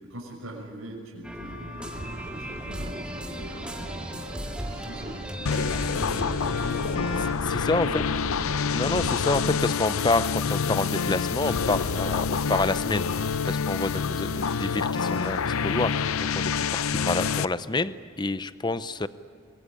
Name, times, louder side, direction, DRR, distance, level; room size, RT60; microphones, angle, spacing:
voice 1, 0.1-7.3 7.8-8.5 14.2-14.4, right 1 dB, 70° right, -1 dB, 6.1 m, -43 dB
sound 1, 1.2-7.3, equal, 5° right, 1.9 m, -37 dB
sound 2, 1.9-9.7, right 1 dB, 30° right, 0.8 m, -39 dB
sound 3, 5.5-17.5, left 6 dB, 80° left, 0.6 m, -27 dB
voice 2, 7.2-8.0 8.7-16.1 16.3-19.1, left 2 dB, 20° left, 14 dB, 0.6 m, -28 dB
23.5 x 22.5 x 10.0 m, 2.2 s
head